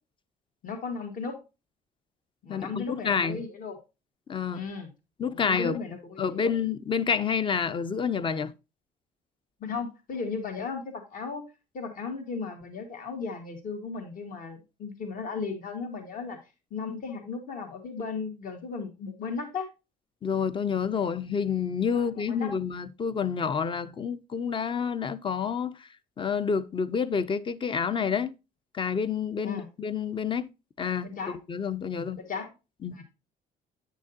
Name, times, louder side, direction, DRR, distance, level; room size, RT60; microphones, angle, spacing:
voice 1, 0.6-1.3 2.4-3.8 4.5-4.9 5.3-6.5 9.6-11.4 11.7-16.4 16.7-19.7 21.9-22.6 29.4-29.7 31.0-31.4 31.9-32.5 32.9-33.0, left 5 dB, 55° left, 2.0 m, -36 dB
voice 2, 2.5-3.5 4.3-4.7 5.2-5.8 6.2-8.5 20.2-25.9 26.2-28.3 28.7-30.5 30.8-32.2 32.8-33.0, left 6 dB, 30° left, 0.6 m, -29 dB
9.1 x 6.2 x 2.6 m
cardioid pair, 110°, 17 cm